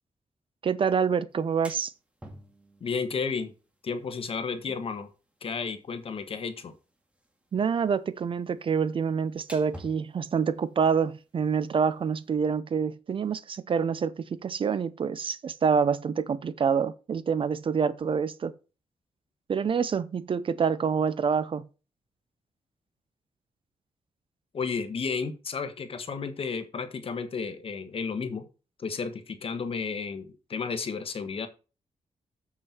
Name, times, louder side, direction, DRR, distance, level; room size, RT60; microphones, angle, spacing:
voice 1, 0.6-1.9 7.5-18.5 19.5-21.7, right 6 dB, 50° right, 0.6 m, -27 dB
sound 1, 1.3-12.6, equal, 10° right, 2.0 m, -54 dB
voice 2, 2.8-3.5 3.8-5.1 5.4-6.7 24.5-28.4 28.8-31.5, left 5 dB, 55° left, 1.4 m, -32 dB
7.5 x 6.5 x 4.4 m
wide cardioid pair, 120°, 12 cm